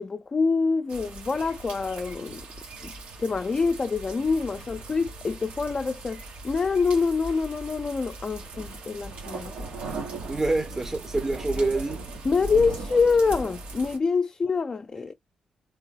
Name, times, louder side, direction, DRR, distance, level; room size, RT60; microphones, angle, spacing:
voice 1, 0.0-2.4 2.8-2.9 3.2-9.7 12.2-15.1, left 4 dB, 40° left, 0.4 m, -26 dB
sound 1, 0.9-14.0, right 2 dB, 75° right, 1.2 m, -39 dB
voice 2, 10.3-12.0, right 2 dB, 20° right, 0.7 m, -26 dB
3.8 x 3.4 x 2.2 m
hypercardioid pair, 45°, 2 cm